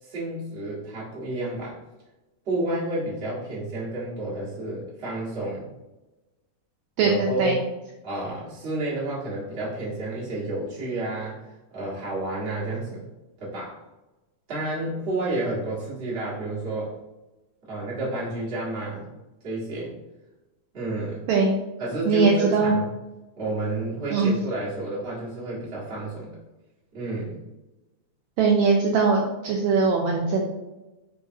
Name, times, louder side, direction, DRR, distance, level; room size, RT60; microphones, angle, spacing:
voice 1, 0.0-1.8 2.4-5.7 7.0-7.6 8.0-11.4 11.7-13.1 13.4-13.8 14.5-17.0 17.7-19.0 19.4-19.9 20.7-21.2 21.8-22.9 23.4-26.4 26.9-27.4, right 2 dB, 45° right, -8 dB, 0.8 m, -30 dB
voice 2, 7.0-7.6 21.3-21.5 22.1-22.7 24.1-24.3 28.4-30.4, right 4 dB, 85° right, -1 dB, 1.6 m, -21 dB
4.7 x 3.2 x 2.6 m, 1.0 s
omnidirectional pair, 3.7 m